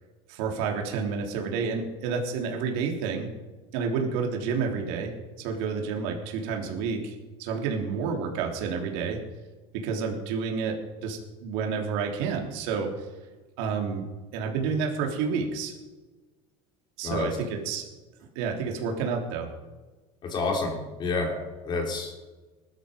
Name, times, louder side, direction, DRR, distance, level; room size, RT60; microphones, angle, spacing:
voice 1, 0.3-3.3 3.7-7.1 7.4-9.2 9.7-12.9 13.6-14.0 14.3-15.7 17.0-17.8 18.4-19.5, right 5 dB, 75° right, 2 dB, 3.5 m, -29 dB
voice 2, 17.0-17.4 20.2-21.4 21.6-22.1, left 3 dB, 35° left, 2 dB, 3.5 m, -29 dB
19.5 x 12.5 x 5.3 m, 1.2 s
cardioid pair, 145°, 14 cm